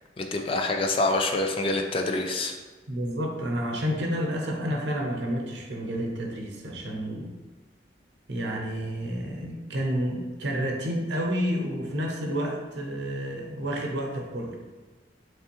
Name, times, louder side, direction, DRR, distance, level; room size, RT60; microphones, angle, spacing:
voice 1, 0.2-2.5, left 2 dB, 30° left, 4 dB, 0.3 m, -26 dB
voice 2, 2.9-7.3 8.3-14.6, equal, 80° right, 0 dB, 0.7 m, -30 dB
3.6 x 3.2 x 2.9 m, 1.3 s
head